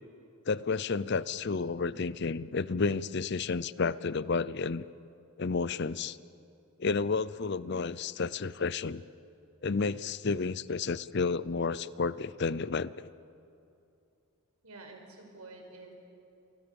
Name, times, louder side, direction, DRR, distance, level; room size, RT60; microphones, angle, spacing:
voice 1, 0.5-4.8 5.4-6.2 6.8-9.0 9.6-12.9, left 4 dB, 50° left, 18 dB, 0.6 m, -31 dB
voice 2, 14.6-15.9, right 2 dB, 90° right, 2 dB, 5.8 m, -49 dB
28.5 x 26.0 x 7.1 m, 2.6 s
head